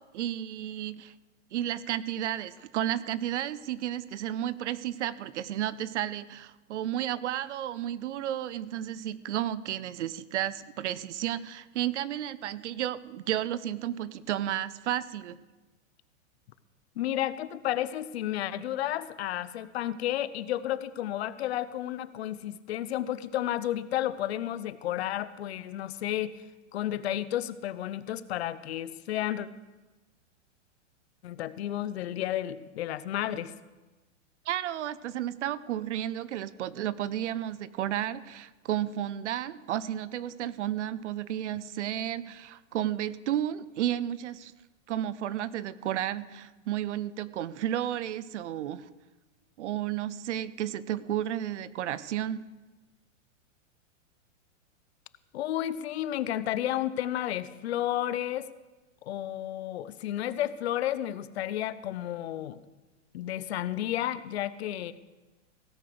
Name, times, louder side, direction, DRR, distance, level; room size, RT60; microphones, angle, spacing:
voice 1, 0.1-1.1 1.5-15.4 34.5-44.5 44.9-48.9 49.6-52.5, right 11 dB, 65° right, 17 dB, 0.7 m, -32 dB
voice 2, 17.0-26.4 26.7-29.5 31.2-33.5 55.3-58.5 59.0-62.6 63.1-64.9, left 12 dB, 55° left, 15 dB, 0.7 m, -32 dB
16.5 x 6.6 x 7.8 m, 1.2 s
hypercardioid pair, 155°, 38 cm